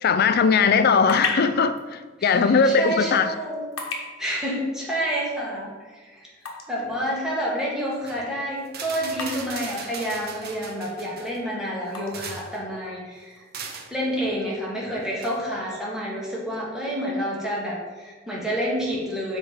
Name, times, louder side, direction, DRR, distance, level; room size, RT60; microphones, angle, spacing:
voice 1, 0.0-3.3, left 5 dB, 45° left, 11 dB, 0.4 m, -19 dB
sound 1, 0.6-14.4, left 4 dB, 70° left, 1.1 m, -39 dB
voice 2, 2.2-3.7 4.2-6.3 6.7-13.4 13.9-19.4, equal, 5° right, -6 dB, 1.6 m, -29 dB
sound 2, 7.9-8.2 8.7-11.4 11.9-12.6 13.5-13.9 15.2-15.4, right 5 dB, 45° right, 0.7 m, -38 dB
6.6 x 4.4 x 5.0 m, 1.4 s
head